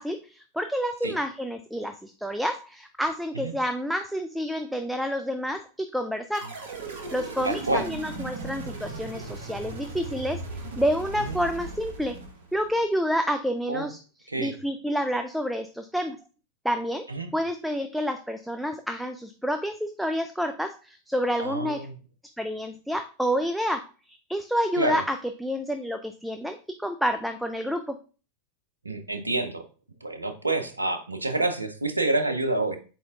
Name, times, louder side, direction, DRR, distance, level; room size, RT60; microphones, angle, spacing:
voice 1, 0.0-6.5 7.1-12.2 12.5-14.0 14.4-16.2 16.6-17.1 17.3-21.9 22.4-25.2 25.4-28.0, equal, ahead, 7 dB, 0.3 m, -29 dB
sound 1, 6.3-12.8, right 2 dB, 60° right, 0.9 m, -37 dB
voice 2, 7.4-7.9 11.1-11.4 13.7-13.9 14.3-14.6 17.1-17.3 21.4-22.0 24.8-25.0 28.8-29.7 30.0-32.8, right 2 dB, 80° right, 8 dB, 0.5 m, -28 dB
4.3 x 4.0 x 2.4 m, 0.36 s
figure-of-eight pair, 85°, 0 cm